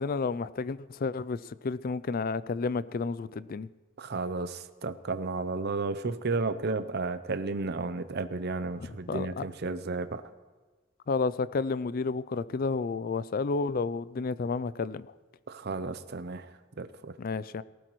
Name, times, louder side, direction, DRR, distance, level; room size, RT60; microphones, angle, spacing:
voice 1, 0.0-3.7 8.8-9.4 11.1-15.1 17.2-17.6, left 4 dB, 45° left, 0.4 m, -31 dB
voice 2, 4.0-10.2 15.5-17.1, right 3 dB, 55° right, 0.7 m, -33 dB
18.5 x 16.0 x 3.1 m
head